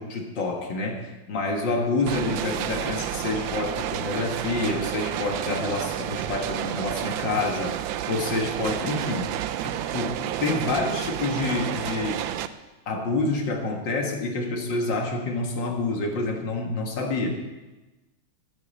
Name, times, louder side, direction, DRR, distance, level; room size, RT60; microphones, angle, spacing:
voice 1, 0.0-12.2 12.9-17.3, left 3 dB, 65° left, 2 dB, 2.4 m, -28 dB
sound 1, 2.1-12.5, right 11 dB, 80° right, 1.4 m, -30 dB
10.5 x 9.9 x 7.6 m, 1.1 s
omnidirectional pair, 2.1 m